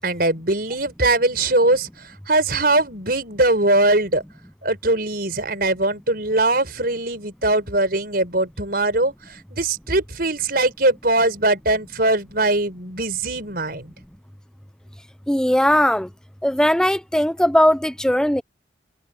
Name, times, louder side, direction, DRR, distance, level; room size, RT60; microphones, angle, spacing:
voice 1, 0.0-4.2 4.6-13.9, right 2 dB, 50° right, 5.7 m, -21 dB
voice 2, 15.3-16.1 16.4-18.4, equal, 5° left, 0.7 m, -18 dB
head